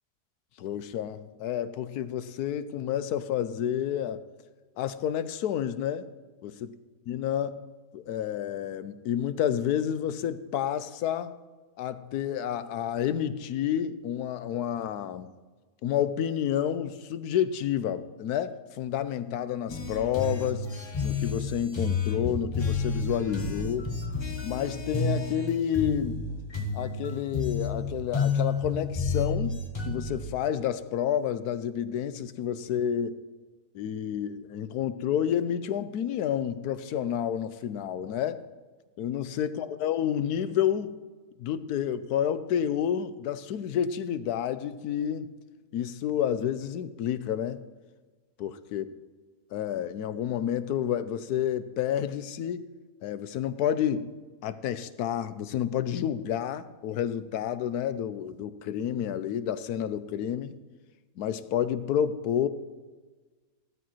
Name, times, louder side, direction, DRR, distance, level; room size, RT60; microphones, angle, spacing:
voice 1, 0.6-4.2 4.8-6.1 6.4-6.6 7.1-7.6 7.9-11.3 11.8-15.3 15.8-20.7 21.0-23.9 24.4-26.2 26.7-29.6 29.8-33.2 33.7-38.4 39.0-41.0 41.4-45.3 45.7-47.6 48.4-48.8 49.5-52.6 53.0-54.1 54.4-60.6 61.2-62.5, left 9 dB, 80° left, 13 dB, 1.2 m, -29 dB
sound 1, 19.7-30.2, left 4 dB, 25° left, 0.7 m, -30 dB
16.5 x 12.5 x 3.1 m, 1.3 s
omnidirectional pair, 1.7 m